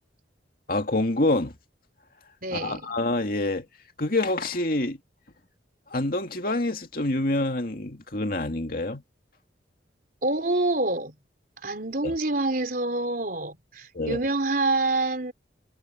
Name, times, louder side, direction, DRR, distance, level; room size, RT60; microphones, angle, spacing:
voice 1, 0.7-1.5 2.5-3.6 4.0-5.0 5.9-9.0 12.0-12.1 13.9-14.2, left 2 dB, 50° left, 2.3 m, -26 dB
voice 2, 2.4-3.0 10.2-11.1 11.6-15.3, right 2 dB, 50° right, 4.1 m, -26 dB
head